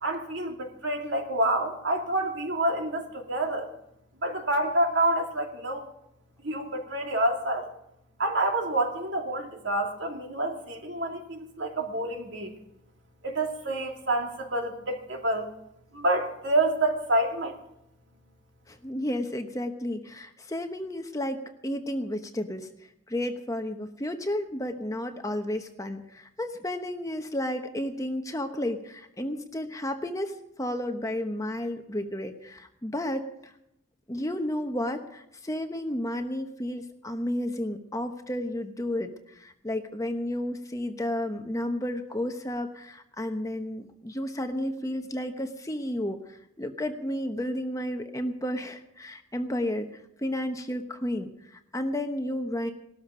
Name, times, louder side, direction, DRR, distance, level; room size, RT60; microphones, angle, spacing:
voice 1, 0.0-3.7 4.2-5.9 6.4-7.7 8.2-12.6 13.2-15.5 15.9-17.6, right 1 dB, 60° right, 2 dB, 2.5 m, -28 dB
voice 2, 18.7-22.7 23.1-33.5 34.1-52.7, left 1 dB, 15° left, 6 dB, 1.0 m, -32 dB
18.5 x 13.0 x 5.0 m, 0.79 s
head